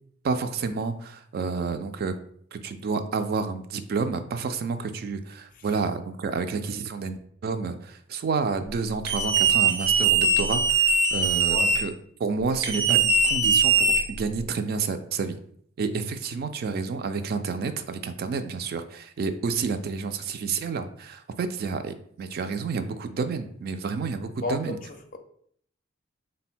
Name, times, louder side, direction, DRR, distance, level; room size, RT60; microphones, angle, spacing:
voice 1, 0.2-2.2 2.5-11.9 12.2-15.4 15.8-24.8, right 4 dB, 50° right, 8 dB, 0.3 m, -30 dB
sound 1, 9.1-11.8 12.6-14.4, right 4 dB, 80° right, 0.8 m, -21 dB
voice 2, 24.4-25.2, left 2 dB, 40° left, 6 dB, 0.4 m, -32 dB
3.8 x 2.2 x 4.2 m, 0.64 s
head